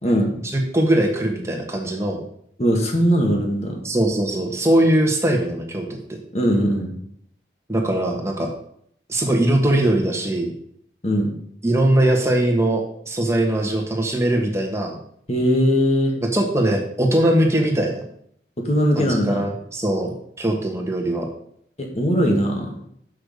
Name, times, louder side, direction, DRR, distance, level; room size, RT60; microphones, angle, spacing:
voice 1, 0.4-2.2 3.8-6.2 7.7-8.5 9.1-10.5 11.6-15.0 16.3-18.0 18.9-20.1 20.4-21.3, right 1 dB, 15° right, 0 dB, 1.4 m, -21 dB
voice 2, 2.6-3.8 6.3-6.9 11.0-11.3 15.3-16.1 18.6-19.4 21.8-22.7, equal, 40° left, 1 dB, 1.8 m, -20 dB
6.5 x 5.7 x 6.7 m, 0.69 s
head